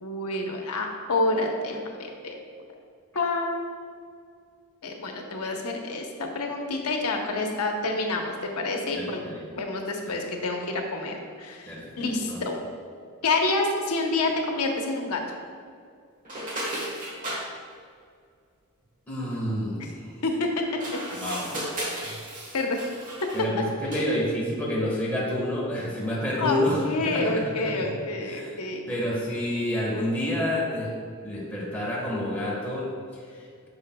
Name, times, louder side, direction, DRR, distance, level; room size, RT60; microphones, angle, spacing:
voice 1, 0.0-2.4 3.1-3.5 4.8-9.2 9.6-12.6 13.2-15.2 20.2-20.6 22.5-22.9 26.4-28.8, left 2 dB, 85° left, 2 dB, 0.9 m, -28 dB
voice 2, 9.0-9.4 10.1-10.2 11.6-12.4 19.1-20.2 21.2-21.6 22.0-22.1 23.3-27.9 28.3-28.6 28.9-30.9 31.2-33.7, left 1 dB, 5° left, -6 dB, 1.2 m, -29 dB
sound 1, 16.3-17.5 20.7-23.5 23.8-24.2, right 1 dB, 35° right, 1.3 m, -34 dB
9.6 x 5.9 x 2.2 m, 2.2 s
head